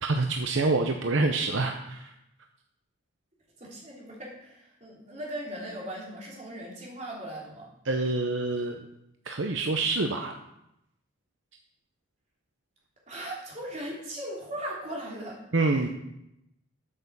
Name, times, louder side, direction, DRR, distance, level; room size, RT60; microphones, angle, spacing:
voice 1, 0.0-2.1 7.9-8.8 9.3-10.4 15.5-15.9, right 3 dB, 70° right, 4 dB, 0.8 m, -26 dB
voice 2, 3.6-7.7 13.1-15.4, right 1 dB, 35° right, -4 dB, 3.3 m, -38 dB
8.6 x 6.6 x 7.0 m, 0.83 s
head